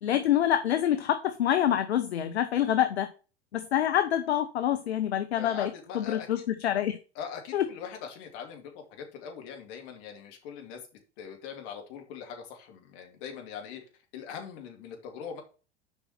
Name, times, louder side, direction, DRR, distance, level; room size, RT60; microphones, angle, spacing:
voice 1, 0.0-3.1 3.5-5.7 5.9-7.0 7.5-7.7, left 11 dB, 70° left, 9 dB, 0.8 m, -26 dB
voice 2, 5.4-6.5 7.1-10.8 11.2-13.8 14.1-15.4, left 7 dB, 50° left, 3 dB, 2.6 m, -41 dB
7.2 x 5.4 x 5.8 m, 0.35 s
figure-of-eight pair, 80°, 34 cm